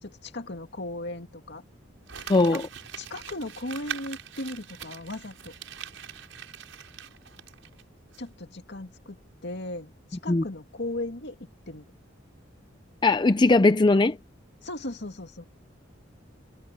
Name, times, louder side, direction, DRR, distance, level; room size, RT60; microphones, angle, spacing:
voice 1, 0.0-1.6 2.5-2.6 3.0-5.5 8.2-11.4 11.7-11.9 14.6-15.5, left 2 dB, 60° left, 2.4 m, -37 dB
Crumpling crinkling, 2.1-7.8 8.1-8.2, right 8 dB, 85° right, 6.1 m, -42 dB
voice 2, 2.3-2.6 10.3-10.4 13.0-14.2, left 2 dB, 25° left, 0.5 m, -19 dB
head